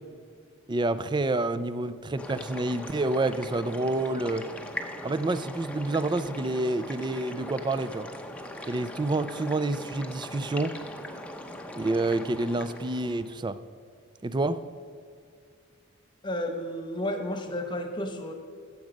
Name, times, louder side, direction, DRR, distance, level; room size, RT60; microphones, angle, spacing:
voice 1, 0.7-4.5 5.0-8.1 8.6-10.8 11.8-13.6 14.2-14.6, right 2 dB, 20° right, 14 dB, 0.4 m, -28 dB
sound 1, 2.2-13.4, left 1 dB, 5° left, 0.7 m, -40 dB
voice 2, 16.2-18.3, left 1 dB, 20° left, 5 dB, 1.1 m, -32 dB
15.5 x 7.3 x 5.2 m, 2.3 s
head